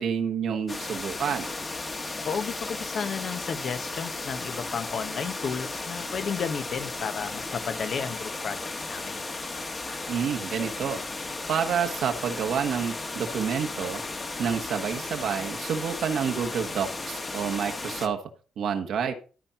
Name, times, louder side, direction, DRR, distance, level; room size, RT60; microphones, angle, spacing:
voice 1, 0.0-1.5 10.1-11.0 11.5-14.0 14.4-18.2 18.6-19.1, right 7 dB, 70° right, 4 dB, 1.4 m, -28 dB
sound 1, 0.7-18.1, left 3 dB, 30° left, 1.5 m, -35 dB
voice 2, 2.2-8.6 8.9-9.2, left 6 dB, 55° left, 10 dB, 1.2 m, -33 dB
13.0 x 4.5 x 5.8 m, 0.38 s
cardioid pair, 90°, 0 cm